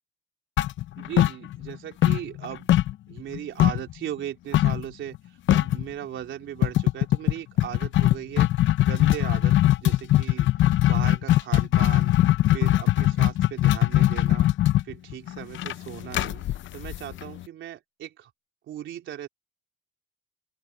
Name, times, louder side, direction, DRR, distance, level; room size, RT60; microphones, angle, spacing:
sound 1, 0.6-1.8 2.0-3.9 4.5-4.8 5.1-5.2 5.5-5.8 6.6-17.4, left 14 dB, 70° left, 0.6 m, -21 dB
voice 1, 1.0-2.7 3.1-5.2 5.5-12.1 12.5-14.5 14.8-16.4 16.7-18.3 18.7-19.3, right 11 dB, 75° right, 3.7 m, -37 dB
open air
cardioid pair, 90°, 20 cm